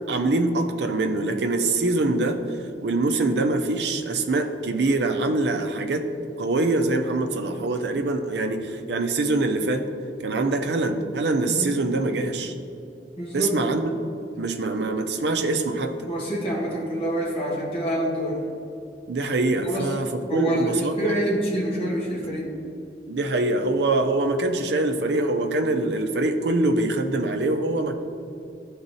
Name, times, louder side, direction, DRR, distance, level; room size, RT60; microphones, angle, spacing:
voice 1, 0.1-6.1 6.4-9.9 10.2-12.5 13.3-13.9 14.4-16.1 19.1-21.2 23.1-27.9, right 2 dB, 75° right, 6 dB, 0.6 m, -24 dB
voice 2, 13.2-13.5 16.1-18.4 19.6-19.9 20.3-22.5, right 1 dB, 30° left, -7 dB, 1.5 m, -26 dB
11.0 x 4.0 x 2.7 m, 2.7 s
head